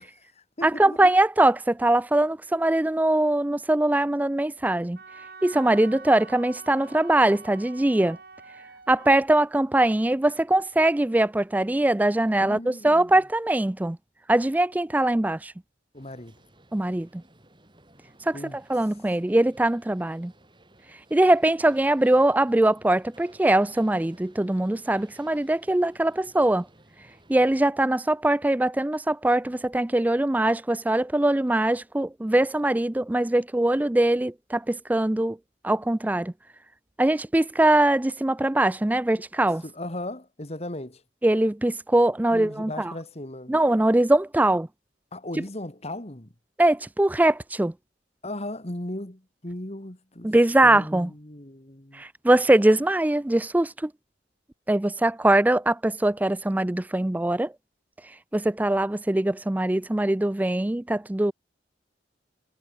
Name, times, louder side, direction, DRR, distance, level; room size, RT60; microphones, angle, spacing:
voice 1, 0.0-1.0 12.4-13.1 15.9-16.3 18.3-18.6 39.6-41.0 42.3-43.5 45.1-46.3 48.2-50.3 50.6-52.0, left 1 dB, 35° left, 2.3 m, -37 dB
voice 2, 0.6-5.0 5.4-8.2 8.9-14.0 14.3-15.5 16.7-17.2 18.2-18.4 18.7-20.3 21.1-26.7 27.3-35.4 35.6-36.3 37.0-39.6 41.2-42.9 43.5-44.7 46.6-47.7 50.2-51.1 51.9-53.9 54.7-57.5 58.3-61.3, right 1 dB, 10° right, 0.3 m, -22 dB
Wind instrument woodwind instrument, 5.0-9.2, right 4 dB, 55° right, 4.6 m, -46 dB
sound 1, 15.9-27.7, right 1 dB, 25° right, 6.6 m, -56 dB
head